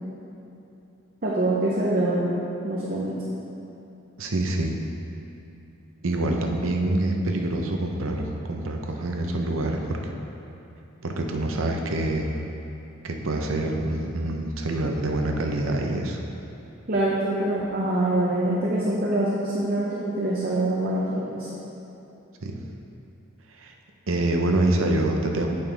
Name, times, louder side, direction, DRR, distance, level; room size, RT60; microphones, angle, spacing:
voice 1, 1.2-2.3 2.6-3.2 16.9-21.5, right 1 dB, 45° right, -6 dB, 0.8 m, -25 dB
voice 2, 4.2-4.8 6.0-10.0 11.0-12.4 13.0-16.2 22.4-22.6 23.6-23.7 24.1-25.5, right 2 dB, 80° right, 2 dB, 0.7 m, -26 dB
8.4 x 5.5 x 3.4 m, 2.9 s
head